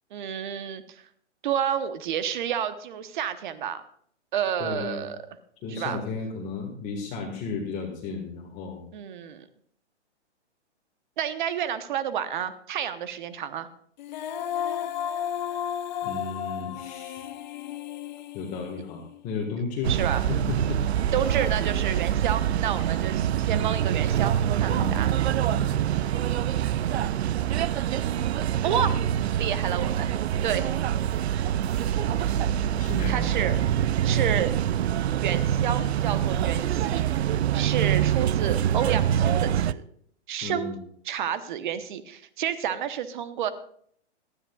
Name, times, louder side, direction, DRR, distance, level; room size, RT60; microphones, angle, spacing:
voice 1, 0.1-1.0 1.4-3.9 4.3-5.2 5.7-6.0 8.9-9.4 11.2-13.7 19.9-20.2 21.1-25.1 28.6-29.0 29.4-30.1 30.4-30.7 33.1-33.6 34.0-34.5 35.2-37.0 37.5-39.8 40.3-40.7 41.1-43.5, right 9 dB, 45° right, 12 dB, 1.0 m, -30 dB
voice 2, 4.6-5.1 5.6-8.8 16.0-17.3 18.3-21.1 24.7-25.2 25.5-25.7 32.8-33.3 40.4-40.8, left 3 dB, 20° left, 0 dB, 1.6 m, -33 dB
Female singing, 14.0-19.2, left 9 dB, 40° left, 0.7 m, -33 dB
sound 1, 19.8-39.7, right 10 dB, 65° right, 0.5 m, -25 dB
18.0 x 13.0 x 2.4 m, 0.63 s
hypercardioid pair, 155°, 35 cm